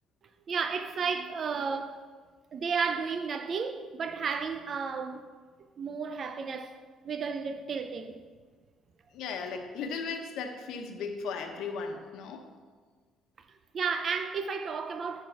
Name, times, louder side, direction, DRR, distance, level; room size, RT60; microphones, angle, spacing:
voice 1, 0.5-2.0 2.5-5.2 5.8-6.7 7.0-8.2 13.7-15.2, right 5 dB, 35° right, 0.5 m, -32 dB
voice 2, 9.1-12.5, left 5 dB, 75° left, 1.2 m, -36 dB
11.0 x 4.6 x 5.8 m
cardioid pair, 155°, 0 cm